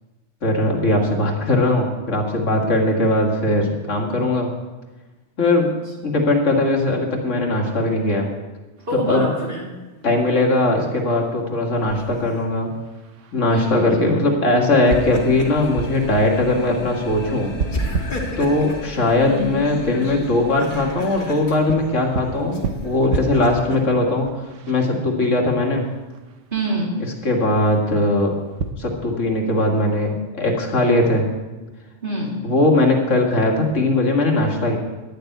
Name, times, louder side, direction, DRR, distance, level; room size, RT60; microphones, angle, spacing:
voice 1, 0.4-4.5 5.4-5.7 6.0-8.3 8.9-9.3 10.0-12.7 13.3-17.5 18.4-24.3 24.7-25.8 27.2-28.3 28.8-31.3 32.4-34.8, left 2 dB, 85° left, 1 dB, 2.3 m, -19 dB
sound 1, 8.8-28.7, right 4 dB, 90° right, 1.3 m, -34 dB
voice 2, 8.9-9.7 13.5-14.0 26.5-27.0 32.0-32.4, right 1 dB, 45° right, -3 dB, 3.2 m, -25 dB
Laughter, 11.9-12.4 14.7-15.7 16.1-16.2 17.7-18.9 20.4-21.4 22.5-23.8, left 1 dB, 45° left, 1.9 m, -32 dB
sound 2, 14.8-23.5, left 4 dB, 65° left, 1.8 m, -35 dB
11.5 x 6.9 x 9.0 m, 1.2 s
omnidirectional pair, 1.2 m